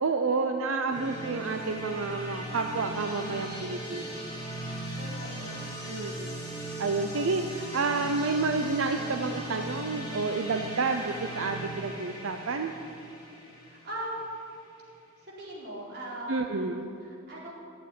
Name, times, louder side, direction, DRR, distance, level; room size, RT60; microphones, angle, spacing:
voice 1, 0.0-4.2 5.9-6.4 6.8-12.7 16.3-16.9, right 3 dB, 85° right, 5 dB, 0.7 m, -30 dB
sound 1, 0.9-14.6, right 1 dB, 20° left, 3.5 m, -38 dB
voice 2, 5.0-5.6 13.7-14.3 15.2-16.7 17.0-17.5, right 1 dB, 55° right, -6 dB, 4.3 m, -39 dB
12.5 x 8.0 x 9.8 m, 2.7 s
head